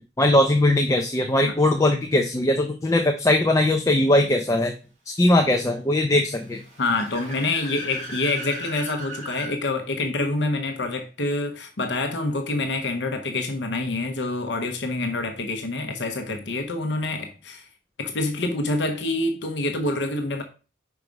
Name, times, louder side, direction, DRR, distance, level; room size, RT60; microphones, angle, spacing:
voice 1, 0.2-4.7 5.1-6.6, left 1 dB, 15° left, 0.5 m, -20 dB
Car / Accelerating revving vroom, 6.3-9.5, right 1 dB, 40° right, 2.3 m, -38 dB
voice 2, 6.8-17.6 18.0-20.4, left 2 dB, 70° left, 0.8 m, -26 dB
4.8 x 4.7 x 5.1 m
head